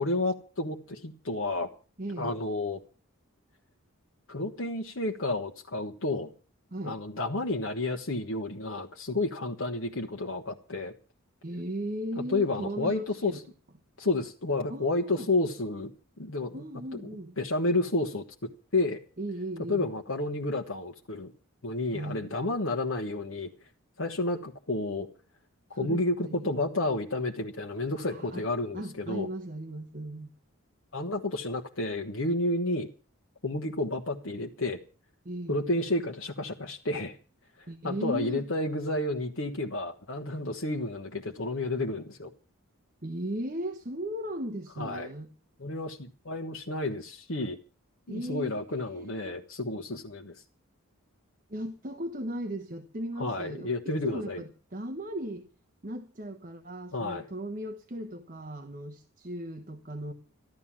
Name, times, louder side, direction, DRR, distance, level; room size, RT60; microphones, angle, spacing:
voice 1, 0.0-1.7 2.2-2.8 4.3-6.3 6.8-10.9 12.3-13.4 14.0-15.9 16.2-16.6 16.9-17.0 17.4-18.2 18.7-19.0 19.7-21.3 21.6-23.5 24.0-25.1 25.7-29.3 30.9-32.9 33.4-34.8 35.5-37.2 37.6-42.3 44.8-45.1 45.6-47.6 48.1-50.4 53.2-54.4 56.9-57.3, left 2 dB, 65° left, 1.3 m, -31 dB
voice 2, 2.0-2.3 6.7-7.0 11.4-13.4 14.7-15.3 16.5-17.3 19.2-19.9 21.9-22.3 25.8-26.5 27.9-28.4 28.7-30.3 35.2-35.6 37.7-38.4 43.0-45.3 48.1-49.3 51.5-55.5 55.8-60.1, right 1 dB, 40° right, 1.2 m, -37 dB
14.5 x 12.0 x 7.4 m
head